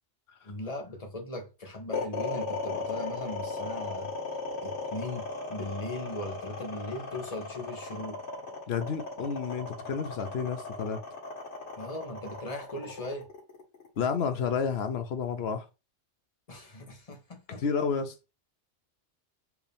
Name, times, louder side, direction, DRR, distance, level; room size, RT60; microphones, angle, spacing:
voice 1, 0.4-4.1 4.6-8.2 11.8-13.3 16.5-17.6, left 1 dB, 35° left, 1.0 m, -39 dB
sound 1, 1.9-14.2, left 3 dB, 80° left, 2.5 m, -36 dB
voice 2, 8.7-11.0 14.0-15.7 17.6-18.1, left 6 dB, 65° left, 1.0 m, -30 dB
4.7 x 2.8 x 3.4 m
omnidirectional pair, 1.2 m